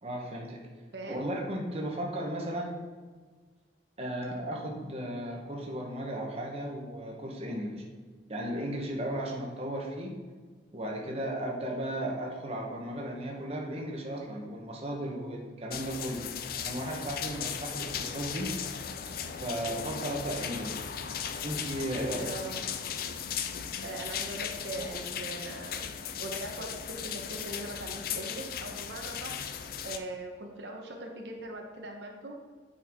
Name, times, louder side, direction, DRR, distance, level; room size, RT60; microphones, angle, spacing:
voice 1, 0.0-0.7 1.1-2.8 4.0-7.8 8.3-10.2 10.7-16.3 16.6-18.5 19.4-20.9 21.4-22.3 24.8-24.9, right 1 dB, 35° right, -1 dB, 1.0 m, -35 dB
voice 2, 0.9-1.2 22.2-22.6 23.8-29.4 29.8-32.3, right 1 dB, 70° right, 1 dB, 1.0 m, -41 dB
sound 1, 15.7-30.0, left 8 dB, 55° left, 0.5 m, -37 dB
8.7 x 5.6 x 3.6 m, 1.5 s
head